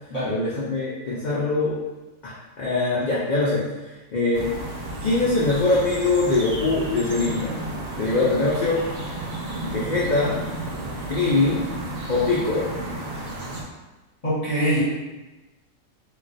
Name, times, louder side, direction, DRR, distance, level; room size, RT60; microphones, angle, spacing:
voice 1, 0.2-1.8 2.2-4.5 5.0-7.6 8.0-8.8 9.6-10.5 11.1-11.6 12.1-12.7, left 3 dB, 85° left, -7 dB, 0.4 m, -23 dB
sound 1, 4.3-13.6, right 1 dB, 60° right, 0.7 m, -32 dB
voice 2, 14.2-14.8, right 1 dB, 35° left, -9 dB, 0.8 m, -23 dB
2.3 x 2.2 x 3.8 m, 1.1 s
omnidirectional pair, 1.4 m